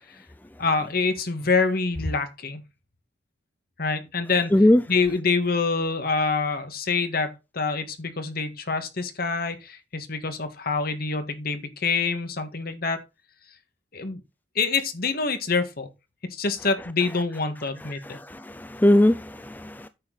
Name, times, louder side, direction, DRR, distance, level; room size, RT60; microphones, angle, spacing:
voice 1, 0.6-2.6 3.8-4.5 4.9-13.0 13.9-14.2 14.5-15.9 16.3-18.2, left 4 dB, 55° left, 1.7 m, -26 dB
voice 2, 18.0-19.9, left 1 dB, 10° left, 0.4 m, -20 dB
9.7 x 7.0 x 4.0 m
head